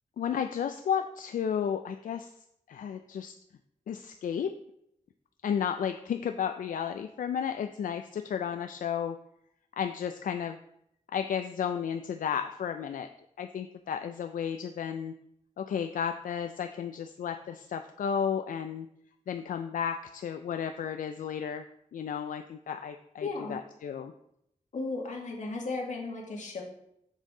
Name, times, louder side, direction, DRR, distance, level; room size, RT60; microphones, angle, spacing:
voice 1, 0.2-2.3 2.7-3.3 3.9-4.5 5.4-9.2 9.7-10.6 11.1-13.1 13.4-15.1 15.6-18.9 19.3-21.7 21.9-24.1, left 8 dB, 85° left, 7 dB, 0.4 m, -33 dB
voice 2, 23.2-23.6 24.7-26.6, left 3 dB, 65° left, -1 dB, 1.9 m, -35 dB
7.3 x 6.4 x 3.7 m, 0.76 s
wide cardioid pair, 150°, 14 cm